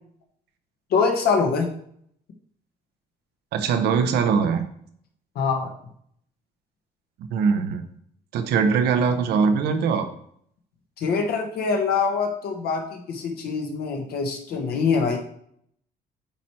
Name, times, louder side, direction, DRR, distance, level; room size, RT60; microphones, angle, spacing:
voice 1, 0.9-1.7 5.3-5.7 11.0-15.2, left 5 dB, 65° left, 2 dB, 1.3 m, -24 dB
voice 2, 3.5-4.6 7.3-7.8 8.3-10.1, right 5 dB, 80° right, 8 dB, 0.9 m, -21 dB
8.8 x 3.3 x 4.4 m, 0.66 s
cardioid pair, 110°, 17 cm